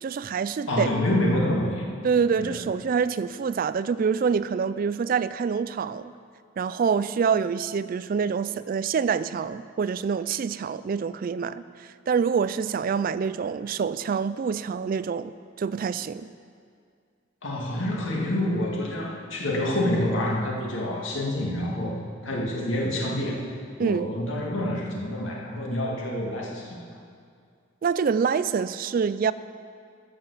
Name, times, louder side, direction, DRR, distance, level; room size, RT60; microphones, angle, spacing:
voice 1, 0.0-0.9 2.0-6.1 6.6-15.3 15.6-16.3 23.8-24.1 27.8-29.3, right 6 dB, 45° right, 15 dB, 0.3 m, -26 dB
voice 2, 0.7-1.8 2.4-2.6 17.4-22.0 22.2-23.4 23.8-26.8, left 1 dB, 70° left, -2 dB, 2.2 m, -27 dB
13.5 x 7.0 x 6.9 m, 2.2 s
head